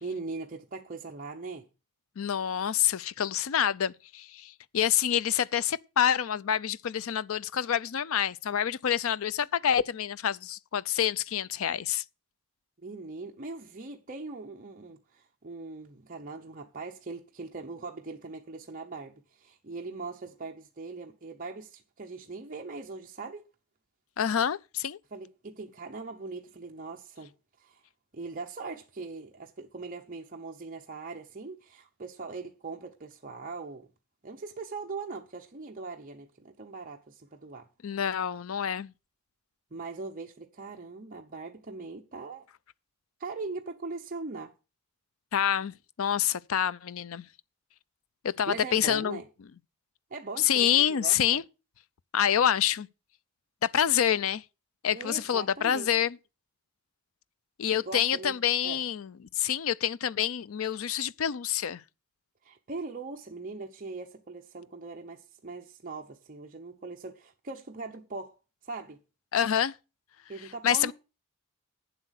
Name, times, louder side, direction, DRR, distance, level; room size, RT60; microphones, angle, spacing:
voice 1, 0.0-1.7 12.8-23.4 25.1-27.3 27.6-27.8 28.1-33.9 34.2-37.7 39.7-42.5 43.2-44.5 48.5-49.3 50.1-51.4 54.9-55.9 57.7-58.3 58.6-58.8 62.4-68.4 68.6-69.0 70.3-70.9, right 3 dB, 40° right, 0.8 m, -40 dB
voice 2, 2.2-12.0 24.2-25.0 37.8-38.9 45.3-47.3 48.2-49.2 50.4-51.4 52.1-52.9 53.6-54.4 54.8-56.2 57.6-61.8 69.3-69.7 70.6-70.9, left 9 dB, 65° left, 0.5 m, -27 dB
8.9 x 7.7 x 6.4 m
head